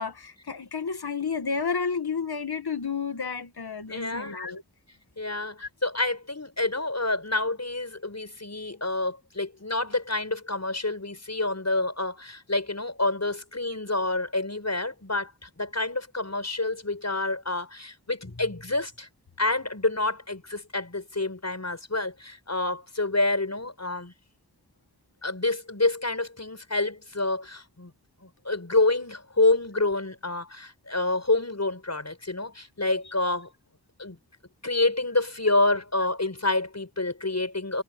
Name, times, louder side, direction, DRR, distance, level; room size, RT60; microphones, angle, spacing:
voice 1, 0.0-4.6, left 5 dB, 85° left, 1.7 m, -31 dB
voice 2, 3.9-4.4 5.2-19.1 19.4-24.1 25.2-27.9 28.2-33.5 34.0-34.2 34.6-37.8, left 2 dB, 45° left, 6.5 m, -28 dB
wide cardioid pair, 65°, 37 cm